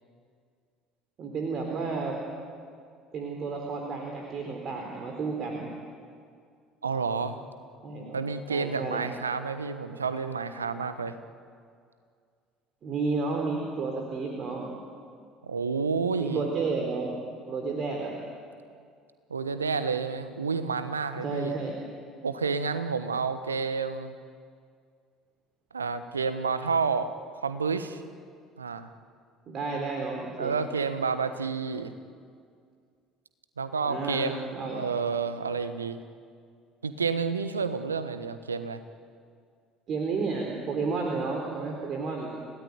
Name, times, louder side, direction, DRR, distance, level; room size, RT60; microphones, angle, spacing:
voice 1, 1.2-2.2 3.1-5.7 7.8-8.2 8.5-9.0 12.8-14.7 16.2-17.2 17.5-18.1 21.2-21.7 29.5-30.5 33.8-34.8 39.9-42.3, right 4 dB, 45° right, 1 dB, 4.1 m, -31 dB
voice 2, 6.8-7.4 8.1-11.2 15.4-16.4 19.3-21.5 22.2-24.1 25.7-27.1 27.4-28.0 28.6-28.9 30.4-31.9 33.6-36.0 36.8-38.8, right 5 dB, 85° right, 11 dB, 1.2 m, -30 dB
30.0 x 18.0 x 9.6 m, 2.2 s
figure-of-eight pair, 60°, 0 cm